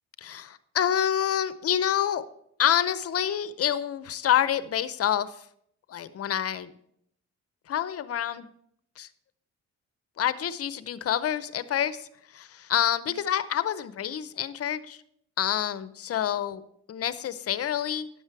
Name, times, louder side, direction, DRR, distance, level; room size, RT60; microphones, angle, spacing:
voice 1, 0.2-2.2 2.6-5.4 5.9-6.7 7.7-8.5 9.0-9.1 10.2-15.0 15.4-16.6 16.9-18.1, left 10 dB, 50° left, 15 dB, 0.6 m, -27 dB
10.5 x 7.3 x 4.6 m, 0.70 s
cardioid pair, 90°, 30 cm